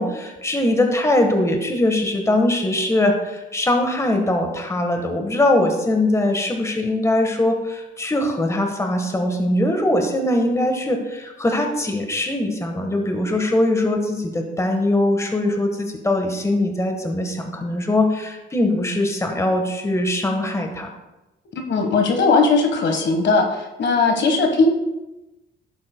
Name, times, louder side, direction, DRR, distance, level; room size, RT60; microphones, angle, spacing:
voice 1, 0.0-20.9, left 1 dB, 15° left, 4 dB, 1.3 m, -21 dB
voice 2, 21.7-24.7, left 3 dB, 65° left, 3 dB, 1.4 m, -18 dB
11.5 x 8.6 x 2.2 m, 1.0 s
cardioid pair, 90°, 20 cm